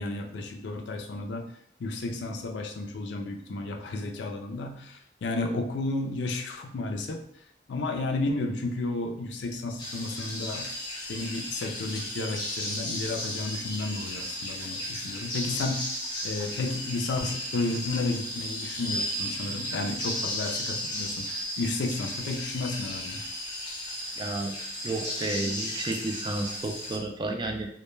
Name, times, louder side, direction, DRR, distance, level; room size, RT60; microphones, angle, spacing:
voice 1, 0.0-1.4 1.8-7.2 7.7-10.7 11.1-23.2, left 2 dB, 85° left, 4 dB, 0.4 m, -32 dB
sound 1, 9.8-27.0, equal, 25° left, 0.6 m, -35 dB
voice 2, 24.2-24.6 24.8-27.7, right 2 dB, 25° right, 3 dB, 0.3 m, -31 dB
2.2 x 2.1 x 3.1 m, 0.69 s
head